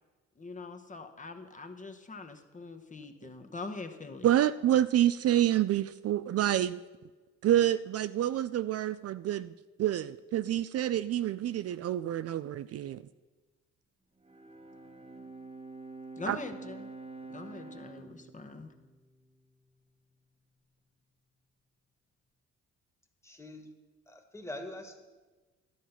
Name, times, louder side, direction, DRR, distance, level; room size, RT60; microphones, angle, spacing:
voice 1, 0.4-4.3 16.2-16.9 17.3-18.7, left 3 dB, 25° left, 5 dB, 1.1 m, -43 dB
voice 2, 4.2-6.8 7.4-9.5 9.8-13.0 16.3-16.4, right 12 dB, 55° right, 14 dB, 0.4 m, -28 dB
Bowed string instrument, 14.2-19.7, right 3 dB, 20° right, 1.2 m, -47 dB
voice 3, 23.2-23.7 24.1-25.0, left 1 dB, 10° left, 4 dB, 1.6 m, -43 dB
12.5 x 7.4 x 5.7 m, 1.3 s
cardioid pair, 90°, 30 cm